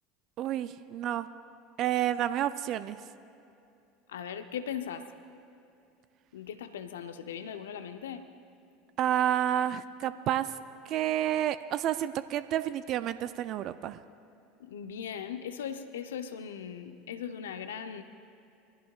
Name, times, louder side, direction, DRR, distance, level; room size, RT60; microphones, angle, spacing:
voice 1, 0.4-1.3 1.8-3.0 9.0-10.5 10.9-14.0, right 11 dB, 50° right, 13 dB, 0.5 m, -30 dB
voice 2, 4.1-5.0 6.3-8.2 14.6-18.0, left 8 dB, 75° left, 9 dB, 0.8 m, -39 dB
23.5 x 16.0 x 2.4 m, 2.6 s
hypercardioid pair, 75°, 0 cm